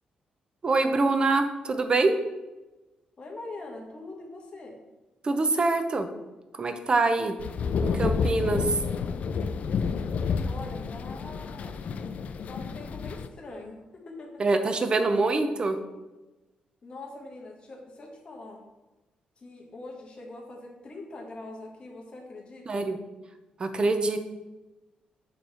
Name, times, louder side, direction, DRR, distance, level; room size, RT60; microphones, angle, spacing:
voice 1, 0.6-2.2 5.2-6.1 6.5-7.3 7.8-8.8 14.4-15.8 22.7-23.0 23.6-24.2, right 3 dB, 35° right, 8 dB, 0.7 m, -24 dB
voice 2, 3.2-4.8 10.4-12.0 12.5-14.4 16.8-18.6 19.4-22.9, left 2 dB, 40° left, -1 dB, 1.4 m, -43 dB
sound 1, 7.4-13.3, left 5 dB, 60° left, 0.4 m, -30 dB
6.9 x 3.3 x 5.6 m, 1.1 s
cardioid pair, 115°, 3 cm